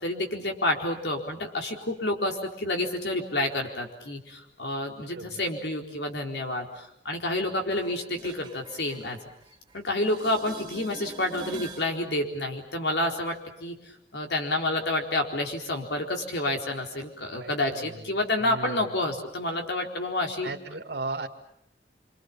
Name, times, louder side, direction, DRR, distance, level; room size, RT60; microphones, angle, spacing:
voice 1, 0.0-2.3 2.6-4.2 4.6-6.6 7.1-9.2 9.9-13.3 13.6-13.7 14.1-20.5, left 1 dB, 75° left, 3 dB, 4.2 m, -29 dB
sound 1, 7.7-9.8 10.0-11.9 17.7-17.8, right 3 dB, 25° right, 2.8 m, -44 dB
voice 2, 17.3-18.1 18.4-19.1 20.4-21.3, right 2 dB, 75° right, 5 dB, 2.3 m, -37 dB
27.5 x 25.0 x 7.3 m, 0.77 s
head